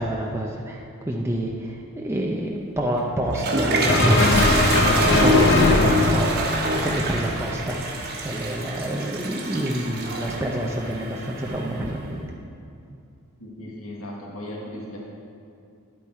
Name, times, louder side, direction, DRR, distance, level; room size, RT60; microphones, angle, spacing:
voice 1, 0.0-12.4, right 1 dB, 10° right, -1 dB, 0.6 m, -27 dB
Toilet flush, 3.0-11.9, right 1 dB, 50° right, 1.3 m, -25 dB
sound 1, 3.9-7.4, left 2 dB, 55° left, 0.8 m, -21 dB
voice 2, 13.4-15.0, left 1 dB, 75° left, -3 dB, 1.6 m, -36 dB
10.5 x 8.2 x 4.3 m, 2.5 s
head